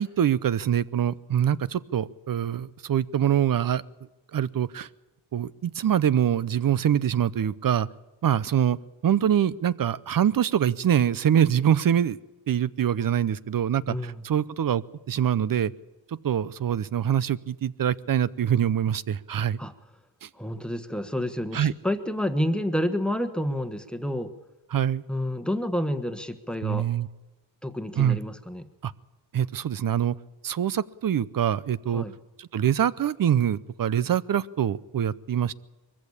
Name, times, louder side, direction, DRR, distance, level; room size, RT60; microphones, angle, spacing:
voice 1, 0.0-3.8 4.3-4.9 5.3-7.9 8.2-8.8 9.0-12.2 12.5-15.7 16.2-19.6 20.2-20.3 21.5-21.7 24.7-25.0 26.6-27.1 28.0-28.2 28.8-28.9 29.3-30.1 30.4-32.0 32.4-35.5, right 9 dB, 45° right, 18 dB, 0.7 m, -24 dB
voice 2, 13.9-14.2 19.6-19.7 20.4-24.3 25.1-26.9 27.6-28.6 31.9-32.1, equal, ahead, 9 dB, 1.3 m, -29 dB
22.5 x 15.0 x 8.7 m, 1.1 s
cardioid pair, 105°, 48 cm